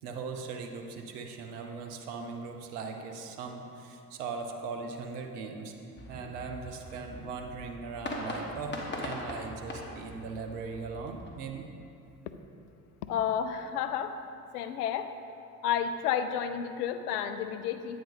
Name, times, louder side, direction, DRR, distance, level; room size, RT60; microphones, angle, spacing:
voice 1, 0.0-5.7 6.1-11.7, right 4 dB, 75° right, 4 dB, 0.8 m, -39 dB
sound 1, 6.0-11.3, left 1 dB, 25° left, 1.4 m, -41 dB
voice 2, 13.0-14.1 14.5-15.1 15.6-18.0, left 8 dB, 75° left, 10 dB, 0.6 m, -31 dB
8.8 x 3.8 x 5.3 m, 2.6 s
figure-of-eight pair, 50°, 47 cm